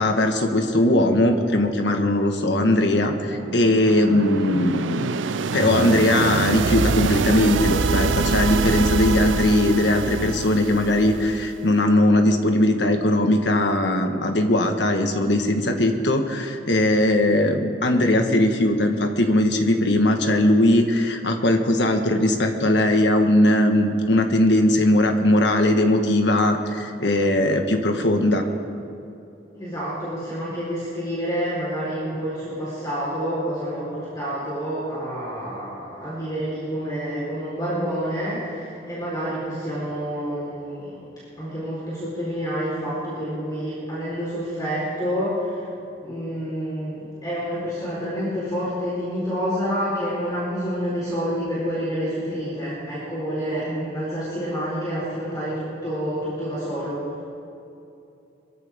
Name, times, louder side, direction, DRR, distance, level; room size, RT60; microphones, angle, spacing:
voice 1, 0.0-5.2 5.5-28.4, left 1 dB, 70° left, 5 dB, 1.5 m, -20 dB
sound 1, 2.8-11.7, right 4 dB, 90° right, 0.5 m, -25 dB
voice 2, 29.5-41.0 41.4-45.7 46.0-57.0, equal, 20° left, -9 dB, 4.1 m, -28 dB
23.0 x 14.0 x 3.6 m, 2.7 s
head